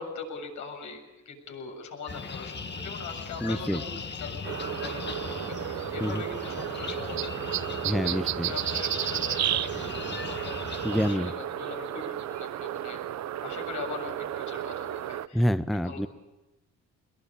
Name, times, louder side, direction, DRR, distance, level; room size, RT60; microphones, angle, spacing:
voice 1, 0.0-13.0 13.4-16.1, left 4 dB, 75° left, 3 dB, 7.4 m, -41 dB
sound 1, 2.1-11.1, left 5 dB, 35° left, 1.8 m, -38 dB
voice 2, 3.4-3.8 6.0-6.2 7.8-8.5 10.8-11.3 15.3-16.1, equal, ahead, 11 dB, 0.9 m, -27 dB
sound 2, 4.4-15.3, right 12 dB, 65° right, 0.8 m, -33 dB
22.0 x 21.5 x 8.7 m, 1.0 s
cardioid pair, 90°, 30 cm